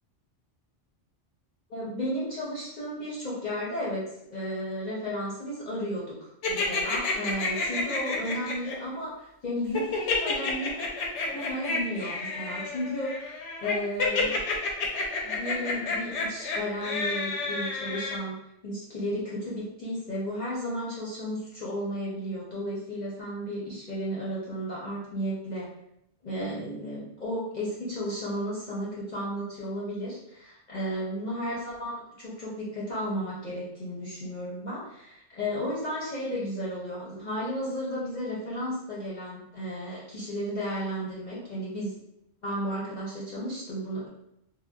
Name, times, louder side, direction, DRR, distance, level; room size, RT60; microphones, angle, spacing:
voice 1, 1.7-10.9 11.2-14.4 15.2-25.7 26.2-41.9 42.4-44.1, equal, 45° left, -7 dB, 0.7 m, -33 dB
sound 1, 6.4-8.7 9.7-18.2, left 4 dB, 75° left, 0.9 m, -30 dB
3.6 x 2.1 x 2.2 m, 0.81 s
omnidirectional pair, 1.2 m